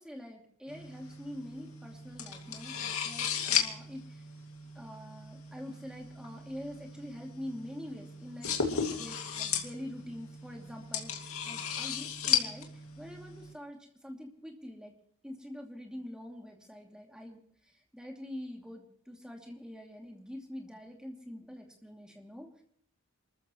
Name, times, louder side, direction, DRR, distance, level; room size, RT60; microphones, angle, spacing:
voice 1, 0.0-4.3 4.7-14.9 15.2-22.6, left 1 dB, 5° right, 0 dB, 2.7 m, -45 dB
sound 1, 0.7-13.5, left 8 dB, 75° left, 2.4 m, -36 dB
28.5 x 14.0 x 3.2 m, 0.62 s
head